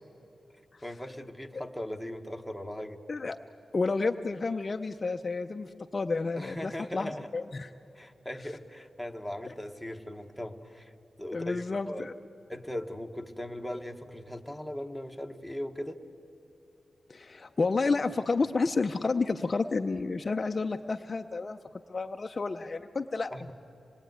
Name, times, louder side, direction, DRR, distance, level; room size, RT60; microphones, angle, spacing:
voice 1, 0.8-3.0 6.4-7.3 7.9-10.9 11.2-12.1 12.5-16.0 23.3-23.5, left 1 dB, ahead, 5 dB, 1.1 m, -39 dB
voice 2, 3.7-7.7 11.3-12.1 17.1-21.6 21.9-23.5, left 3 dB, 30° left, 6 dB, 0.5 m, -30 dB
26.5 x 20.5 x 9.3 m, 2.9 s
wide cardioid pair, 180°, 0 cm